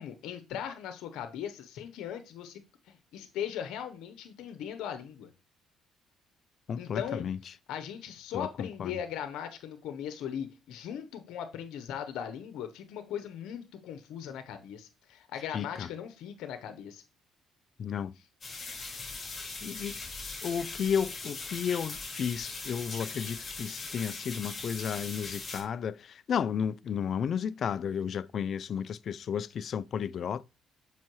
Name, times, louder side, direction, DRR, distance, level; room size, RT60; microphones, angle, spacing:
voice 1, 0.0-2.6 2.9-5.3 6.8-7.3 7.7-17.0, left 9 dB, 80° left, 0.8 m, -39 dB
voice 2, 6.7-7.4 8.3-9.0 15.5-15.9 17.8-18.1 19.6-20.0 20.4-30.4, left 7 dB, 55° left, 0.3 m, -33 dB
sound 1, 18.4-25.6, left 3 dB, 35° left, 3.3 m, -40 dB
7.5 x 5.6 x 3.0 m
cardioid pair, 85°, 0 cm